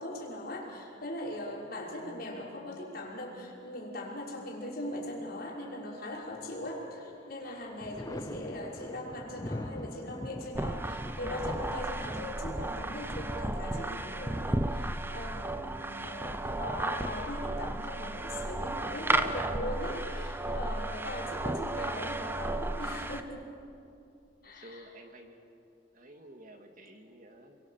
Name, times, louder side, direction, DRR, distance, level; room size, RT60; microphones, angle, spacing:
voice 1, 0.0-23.5 24.4-24.8, left 1 dB, 55° left, -3 dB, 5.8 m, -40 dB
Thunder, 6.2-6.9 7.3-16.9 18.4-19.2, left 1 dB, 20° left, 0.8 m, -45 dB
sound 1, 10.6-23.2, right 2 dB, 10° right, 0.8 m, -34 dB
voice 2, 24.4-25.4 25.9-27.6, right 1 dB, 45° right, 4 dB, 2.1 m, -52 dB
29.5 x 23.5 x 7.5 m, 2.6 s
head